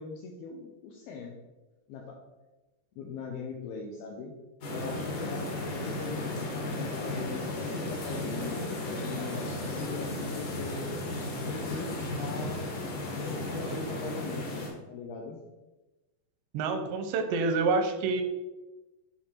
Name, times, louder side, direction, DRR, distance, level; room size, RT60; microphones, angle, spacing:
voice 1, 0.0-1.4 1.9-2.2 3.0-4.3 4.7-6.4 6.7-10.9 11.5-12.7 13.1-14.6 14.9-15.4, left 5 dB, 85° left, 0 dB, 2.2 m, -40 dB
sound 1, 4.6-14.7, left 2 dB, 60° left, 2.5 m, -34 dB
voice 2, 16.5-18.2, right 4 dB, 85° right, 7 dB, 2.8 m, -27 dB
8.8 x 3.5 x 4.2 m, 1.1 s
omnidirectional pair, 4.9 m